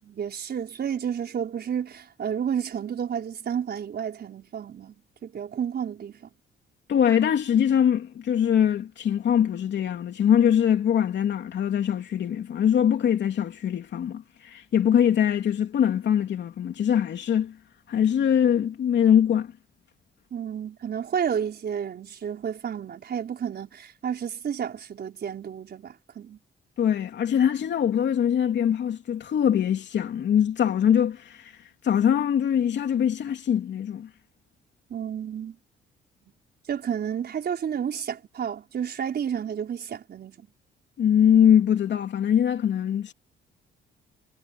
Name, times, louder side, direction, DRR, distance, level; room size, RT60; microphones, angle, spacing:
voice 1, 0.0-6.3 20.3-26.4 34.9-35.6 36.7-40.5, right 8 dB, 55° right, 5.0 m, -31 dB
voice 2, 6.9-17.6 17.9-19.5 26.8-31.6 31.8-34.1 41.0-43.1, left 9 dB, 65° left, 3.0 m, -22 dB
cardioid pair, 90°, 20 cm